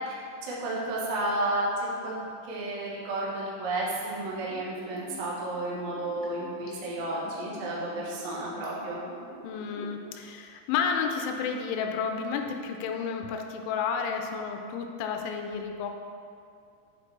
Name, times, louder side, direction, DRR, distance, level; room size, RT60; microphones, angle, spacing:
voice 1, 0.4-1.7 2.0-2.2 2.4-9.0, right 2 dB, 75° right, -6 dB, 1.8 m, -32 dB
Liquid, 4.0-10.1 10.4-10.5, left 4 dB, 65° left, 3.0 m, -46 dB
voice 2, 9.4-15.9, left 6 dB, 90° left, 4 dB, 3.1 m, -31 dB
8.0 x 7.5 x 3.2 m, 2.4 s
omnidirectional pair, 5.4 m